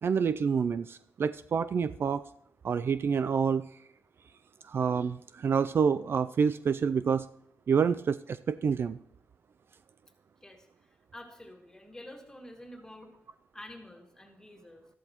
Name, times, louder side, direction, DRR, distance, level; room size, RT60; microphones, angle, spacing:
voice 1, 0.0-2.2 2.6-3.6 4.7-7.2 7.7-9.0, right 6 dB, 50° right, 14 dB, 0.3 m, -27 dB
voice 2, 10.4-13.2 13.5-14.9, left 1 dB, 10° left, 2 dB, 2.1 m, -49 dB
13.5 x 12.0 x 3.0 m, 0.74 s
cardioid pair, 85°, 5 cm